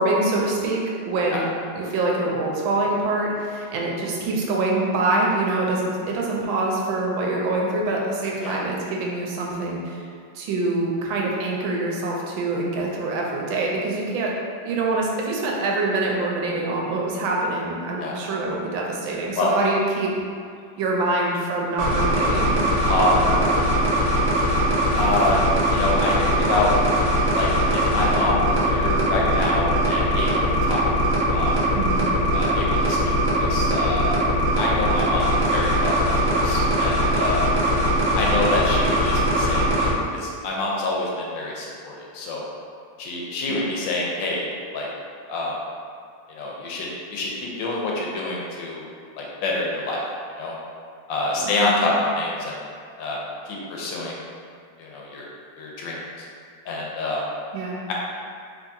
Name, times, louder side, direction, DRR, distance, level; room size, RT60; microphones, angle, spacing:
voice 1, 0.0-1.5 1.7-10.0 10.3-14.3 14.6-20.1 20.8-22.6 23.3-23.6 31.7-32.1 43.5-43.6 51.4-51.9 57.5-57.8, right 2 dB, 90° right, -2 dB, 1.3 m, -25 dB
sound 1, 21.8-39.9, equal, 70° right, 1.1 m, -21 dB
voice 2, 22.8-23.2 24.9-25.4 25.7-26.7 27.3-30.9 31.3-31.6 32.3-37.5 38.1-42.4 43.0-44.9 45.3-45.5 46.3-48.8 49.2-50.0 50.4-50.5 51.1-52.6 53.0-53.2 53.4-54.2 54.8-55.3 55.6-56.3 56.7-57.2 57.9-58.0, left 2 dB, 80° left, -3 dB, 1.3 m, -27 dB
3.4 x 2.7 x 2.6 m, 2.2 s
omnidirectional pair, 2.1 m